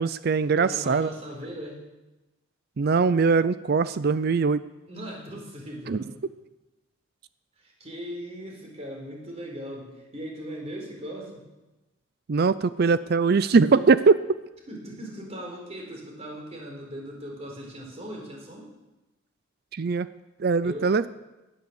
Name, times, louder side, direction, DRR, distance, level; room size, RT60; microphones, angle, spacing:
voice 1, 0.0-1.1 2.8-4.6 5.9-6.0 12.3-14.2 19.7-20.1 20.4-21.0, right 4 dB, 50° right, 15 dB, 0.4 m, -21 dB
voice 2, 0.6-1.8 4.9-6.2 7.6-11.5 13.7-13.9 14.7-18.7 20.6-20.9, equal, 30° right, 0 dB, 4.2 m, -39 dB
17.5 x 10.5 x 7.0 m, 1.1 s
head